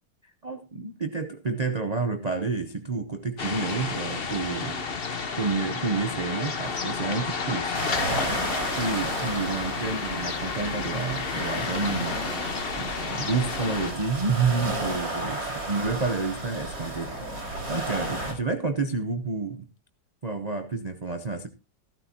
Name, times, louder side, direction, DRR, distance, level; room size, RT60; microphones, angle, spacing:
voice 1, 0.4-4.8 5.4-7.8 8.8-12.2 12.8-17.1 17.4-19.7 20.2-21.5, right 4 dB, 75° right, 0.3 m, -29 dB
sound 1, 3.4-13.9, left 5 dB, 35° left, 1.1 m, -31 dB
sound 2, 7.7-18.3, right 1 dB, 55° right, 5.2 m, -33 dB
15.0 x 13.5 x 2.8 m
omnidirectional pair, 2.1 m